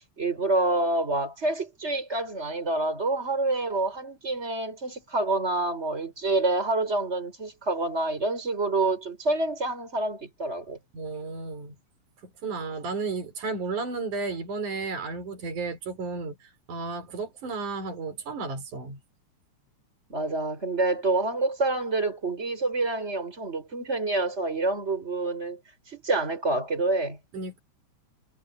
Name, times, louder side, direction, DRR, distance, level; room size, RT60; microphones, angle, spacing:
voice 1, 0.2-10.8 20.1-25.6 25.9-27.2, right 2 dB, 20° right, 6.5 m, -27 dB
voice 2, 10.9-11.7 12.4-19.0 27.3-27.6, right 4 dB, 75° right, 6.2 m, -33 dB
omnidirectional pair, 3.6 m